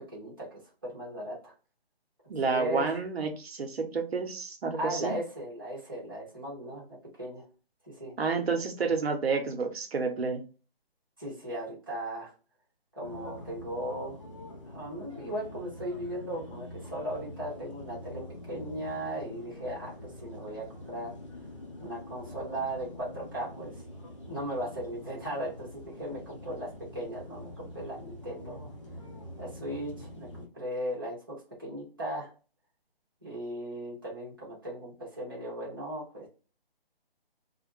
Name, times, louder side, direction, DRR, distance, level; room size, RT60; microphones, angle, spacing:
voice 1, 0.1-1.5 2.5-2.9 4.7-7.4 7.8-8.1 11.2-12.3 12.9-14.2 14.7-18.2 18.5-21.1 21.8-23.7 24.3-28.7 29.4-32.3 33.2-36.3, right 1 dB, 20° right, -6 dB, 0.6 m, -37 dB
voice 2, 2.3-5.1 8.2-10.4, right 4 dB, 85° right, 5 dB, 0.7 m, -30 dB
sound 1, 13.0-30.5, left 1 dB, 30° left, 0.6 m, -45 dB
2.4 x 2.1 x 3.0 m, 0.35 s
hypercardioid pair, 180°, 30 cm